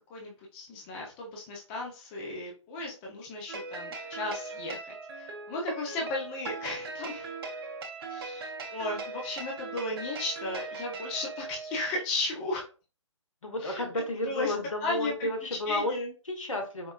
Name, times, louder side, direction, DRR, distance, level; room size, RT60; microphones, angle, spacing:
voice 1, 0.1-4.8 5.2-7.3 8.1-12.6 13.6-13.8 14.2-14.5 14.8-15.3 15.7-16.1, left 2 dB, 20° left, -1 dB, 0.7 m, -35 dB
sound 1, 3.5-11.9, right 3 dB, 50° right, 0.7 m, -39 dB
voice 2, 13.4-16.0 16.3-16.9, left 1 dB, 80° left, 2 dB, 1.1 m, -32 dB
4.4 x 2.1 x 2.3 m, 0.34 s
figure-of-eight pair, 135°, 16 cm